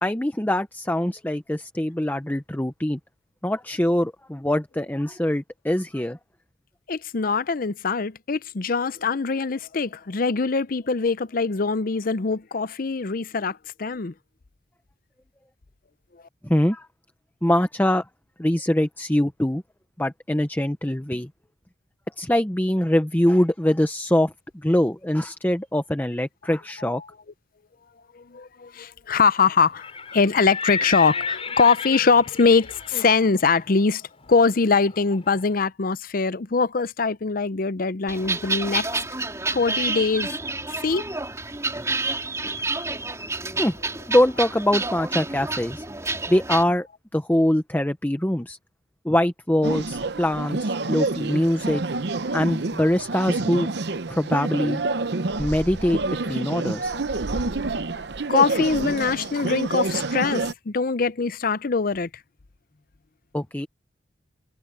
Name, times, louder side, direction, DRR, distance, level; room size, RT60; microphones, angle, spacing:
voice 1, 0.0-3.0 3.4-6.2 16.4-16.9 17.4-18.0 18.4-19.6 20.0-21.3 22.2-27.0 43.6-43.8 44.1-45.9 46.3-46.9 47.1-48.6 49.0-51.8 52.3-53.7 54.1-54.8 55.4-56.0 56.3-56.9 63.3-63.7, left 1 dB, 10° left, 0.8 m, -23 dB
voice 2, 6.9-14.1 26.9-27.1 28.1-39.0 39.5-40.3 40.7-41.0 56.7-57.0 58.3-62.1, left 4 dB, 50° left, 0.6 m, -23 dB
Livestock farm animals working animals, 29.7-35.5, left 5 dB, 35° left, 4.4 m, -33 dB
sound 1, 38.1-46.6, right 3 dB, 15° right, 4.6 m, -29 dB
sound 2, 49.6-60.5, right 3 dB, 65° right, 0.8 m, -28 dB
head